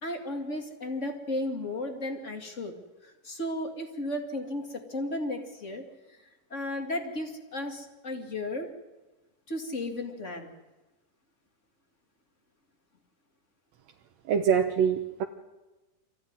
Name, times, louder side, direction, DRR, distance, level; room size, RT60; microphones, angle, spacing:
voice 1, 0.0-2.7 3.0-5.9 6.5-8.7 9.5-10.5, left 1 dB, 25° left, 4 dB, 2.0 m, -34 dB
voice 2, 14.3-15.2, right 7 dB, 65° right, 4 dB, 1.8 m, -24 dB
25.0 x 15.0 x 9.6 m, 1.1 s
omnidirectional pair, 3.8 m